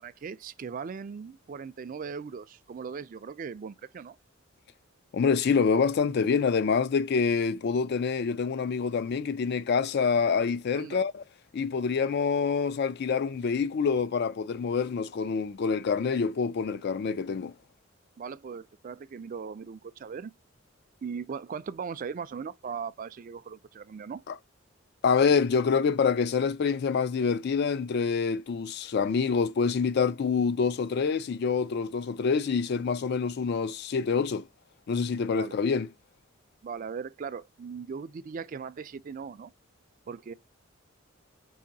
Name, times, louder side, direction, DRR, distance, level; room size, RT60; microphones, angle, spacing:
voice 1, 0.0-4.2 10.7-11.0 18.2-20.3 21.0-24.2 35.3-35.6 36.6-39.5 40.1-40.3, right 6 dB, 40° right, 0.3 m, -39 dB
voice 2, 5.1-11.2 11.5-17.5 24.3-24.4 25.0-34.5 34.9-35.9, left 5 dB, 50° left, 0.3 m, -26 dB
4.8 x 2.5 x 2.6 m
head